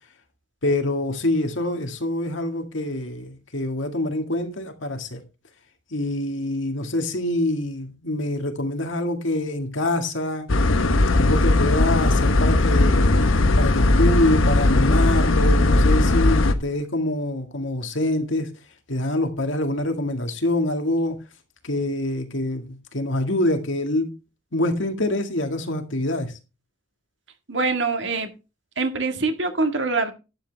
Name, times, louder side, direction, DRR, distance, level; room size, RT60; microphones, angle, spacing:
voice 1, 0.6-5.2 5.9-10.5 11.1-18.5 18.9-21.2 21.6-24.1 24.5-26.3, left 1 dB, 70° left, 2.0 m, -25 dB
sound 1, 10.5-16.5, left 2 dB, 90° left, 1.1 m, -18 dB
voice 2, 27.5-28.3 28.8-30.1, right 3 dB, 60° right, 1.8 m, -24 dB
11.5 x 8.5 x 3.4 m
head